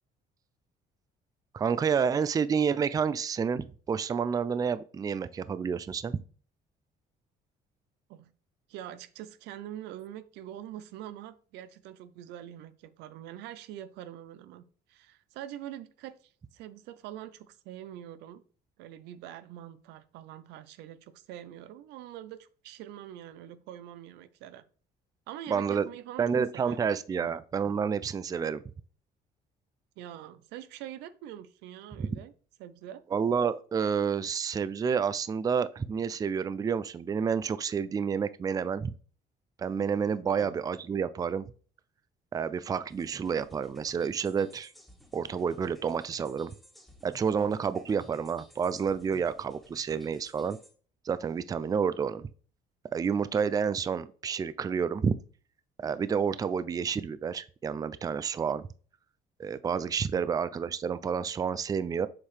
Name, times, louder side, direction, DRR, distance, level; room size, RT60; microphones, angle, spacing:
voice 1, 1.5-6.2 25.5-25.9 26.2-28.6 32.0-32.2 33.1-38.9 39.6-41.5 42.3-44.7 45.1-46.5 47.0-50.6 51.0-52.3 52.9-55.2 55.8-58.7 59.4-62.1, right 6 dB, 20° right, 0.3 m, -29 dB
voice 2, 8.7-14.6 14.9-18.4 18.8-24.6 25.3-26.2 26.5-27.3 30.0-32.3 32.6-33.0 40.3-40.5 60.1-60.3, right 11 dB, 90° right, 0.5 m, -44 dB
sound 1, 42.9-50.7, left 1 dB, ahead, 1.6 m, -57 dB
7.2 x 4.7 x 3.2 m
cardioid pair, 110°, 17 cm